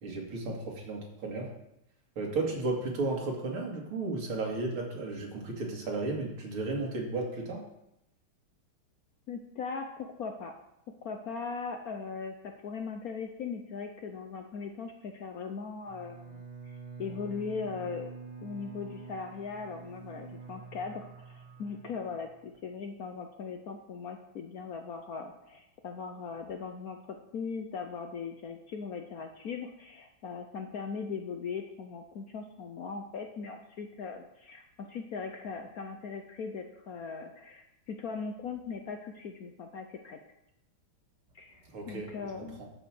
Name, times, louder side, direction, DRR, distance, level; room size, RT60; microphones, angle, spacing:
voice 1, 0.0-1.5 2.2-7.6 41.7-42.1 42.4-42.6, right 3 dB, 85° right, -1 dB, 3.0 m, -34 dB
voice 2, 9.3-10.5 11.0-40.2 41.3-41.6 41.9-42.6, left 5 dB, 60° left, 4 dB, 0.9 m, -39 dB
Bowed string instrument, 15.8-22.5, right 5 dB, 20° right, 1.4 m, -47 dB
12.5 x 5.1 x 6.0 m, 0.84 s
omnidirectional pair, 2.3 m